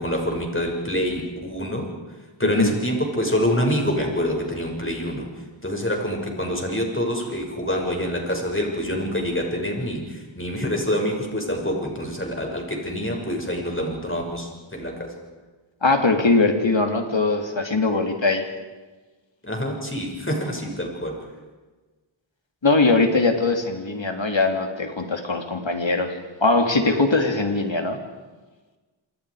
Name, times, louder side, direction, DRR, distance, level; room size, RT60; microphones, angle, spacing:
voice 1, 0.0-1.8 2.4-5.3 5.6-15.1 19.4-21.2, equal, 25° left, 1 dB, 6.5 m, -26 dB
voice 2, 15.8-18.4 22.6-26.1 26.4-28.0, left 3 dB, 65° left, 4 dB, 3.1 m, -21 dB
27.5 x 26.5 x 5.0 m, 1.3 s
wide cardioid pair, 40°, 48 cm